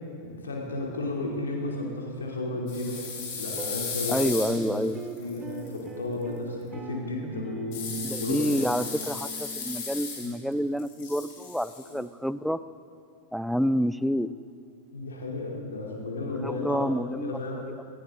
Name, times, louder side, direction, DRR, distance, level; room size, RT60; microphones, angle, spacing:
voice 1, 0.2-3.0 3.3-9.0 10.2-10.4 11.8-12.0 14.9-17.6, left 2 dB, 70° left, -1 dB, 2.8 m, -34 dB
sound 1, 2.7-5.7 7.7-10.5 10.8-11.9, left 5 dB, 45° left, 3.6 m, -36 dB
sound 2, 3.5-10.1, right 3 dB, 20° right, 1.0 m, -41 dB
voice 2, 4.1-5.0 8.0-12.6 13.3-14.3 16.4-17.4 17.7-17.8, equal, ahead, 15 dB, 0.4 m, -28 dB
19.0 x 15.5 x 3.7 m, 2.5 s
figure-of-eight pair, 90°, 0 cm